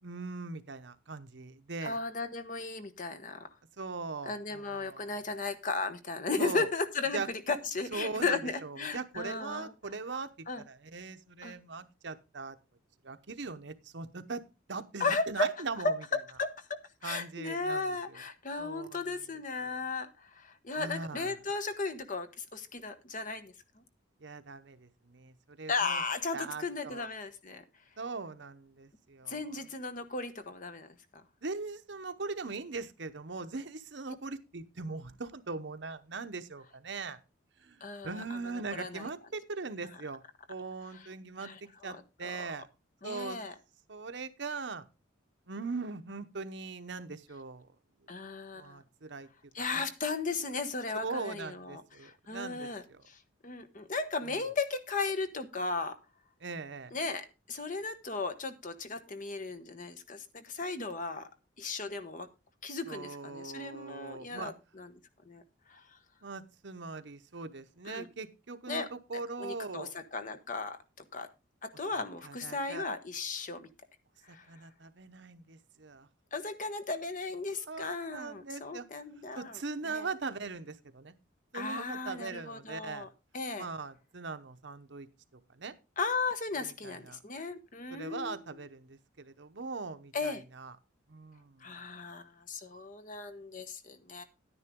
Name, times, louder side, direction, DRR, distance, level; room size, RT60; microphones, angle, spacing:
voice 1, 0.0-2.0 3.8-5.2 6.4-6.7 7.1-7.3 7.9-10.3 10.6-12.6 13.0-14.4 14.7-16.0 17.0-18.2 18.6-19.8 20.8-21.4 24.2-26.0 26.3-27.1 28.0-29.6 31.4-37.2 37.6-40.2 40.5-41.5 41.8-42.7 43.0-43.4 43.9-44.8 45.5-47.7 48.6-49.3 49.6-49.8 51.0-53.0 54.2-54.4 56.4-56.9 62.9-64.5 66.2-69.9 71.9-72.8 74.3-76.1 77.5-78.9 79.4-81.1 81.5-83.1 83.6-85.1 85.5-85.7 86.6-87.2 87.9-90.8 91.1-91.7, right 4 dB, 60° right, 10 dB, 0.9 m, -40 dB
voice 2, 1.8-3.5 4.3-9.7 10.5-10.6 11.4-11.5 15.0-15.5 15.8-23.5 25.7-27.6 29.3-30.9 37.8-38.2 38.7-39.1 41.4-42.0 42.2-42.3 43.0-43.5 48.1-48.8 49.5-56.0 56.9-61.3 61.6-62.3 62.6-64.9 65.2-65.4 65.7-65.8 67.9-68.1 68.7-68.9 69.4-70.8 71.1-71.3 71.6-73.7 74.2-74.4 76.3-80.1 81.5-83.1 83.3-83.6 86.0-88.3 90.1-90.4 91.6-94.2, left 3 dB, 40° left, 10 dB, 1.1 m, -36 dB
10.5 x 9.8 x 3.6 m, 0.27 s
head